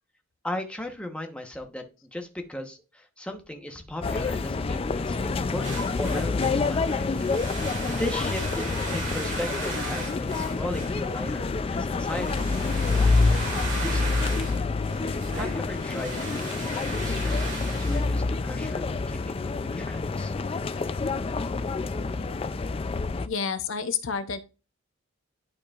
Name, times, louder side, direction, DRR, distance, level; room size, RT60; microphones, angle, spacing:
voice 1, 0.4-1.8 2.1-7.0 7.6-13.1 13.7-14.1 15.3-19.5 19.8-20.3, left 1 dB, 5° left, 3 dB, 1.0 m, -37 dB
sound 1, 4.0-23.3, left 3 dB, 25° left, 0.3 m, -27 dB
sound 2, 5.6-18.6, right 2 dB, 55° right, 3.3 m, -38 dB
voice 2, 23.3-24.4, left 6 dB, 65° left, 10 dB, 0.7 m, -29 dB
11.0 x 4.7 x 2.4 m, 0.31 s
head